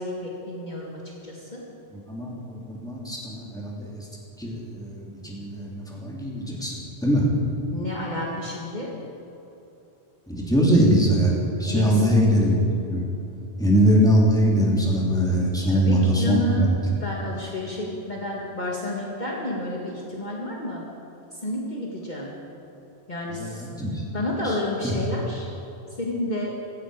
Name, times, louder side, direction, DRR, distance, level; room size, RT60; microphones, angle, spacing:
voice 1, 0.0-1.6 7.7-8.9 11.7-12.0 15.7-16.7 17.0-20.8 21.4-22.3 23.1-23.6 24.1-25.5 26.0-26.5, left 1 dB, 45° left, -3 dB, 2.0 m, -30 dB
voice 2, 1.9-4.1 4.4-7.2 10.3-11.3 11.6-12.6 12.9-13.0 13.6-16.4 23.4-24.0 24.4-24.6 24.8-24.9, equal, 5° left, -4 dB, 2.8 m, -22 dB
16.5 x 15.0 x 4.9 m, 2.9 s
omnidirectional pair, 1.1 m